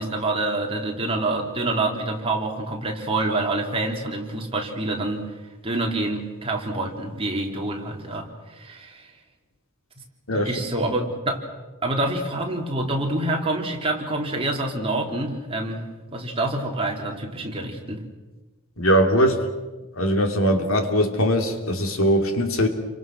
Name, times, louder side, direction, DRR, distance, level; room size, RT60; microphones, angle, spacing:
voice 1, 0.0-5.3 5.6-9.1 10.3-11.4 11.8-15.8 16.1-18.0, right 2 dB, 25° right, 1 dB, 3.5 m, -27 dB
voice 2, 18.8-19.4 19.9-22.7, equal, 65° left, 5 dB, 3.1 m, -21 dB
30.0 x 24.5 x 6.2 m, 1.2 s
head